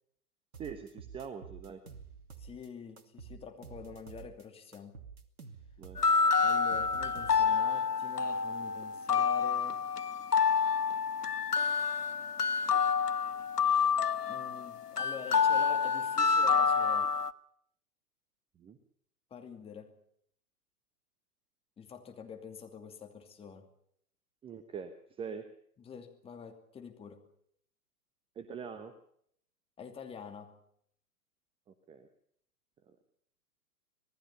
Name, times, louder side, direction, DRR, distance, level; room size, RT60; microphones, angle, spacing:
sound 1, 0.5-2.7 3.0-4.4 4.7-7.7, right 6 dB, 70° right, 2.6 m, -49 dB
voice 1, 0.6-1.8 5.8-6.0 18.6-18.8 24.4-25.5 28.4-28.9 31.9-32.1, right 6 dB, 10° right, 10 dB, 1.1 m, -43 dB
voice 2, 2.4-5.1 6.4-9.8 14.2-17.2 19.3-20.0 21.8-23.7 25.8-27.2 29.8-30.6, left 6 dB, 10° left, 4 dB, 2.6 m, -47 dB
sound 2, 6.0-17.3, left 5 dB, 80° left, 1.0 m, -28 dB
26.0 x 19.5 x 5.6 m, 0.68 s
figure-of-eight pair, 115°, 46 cm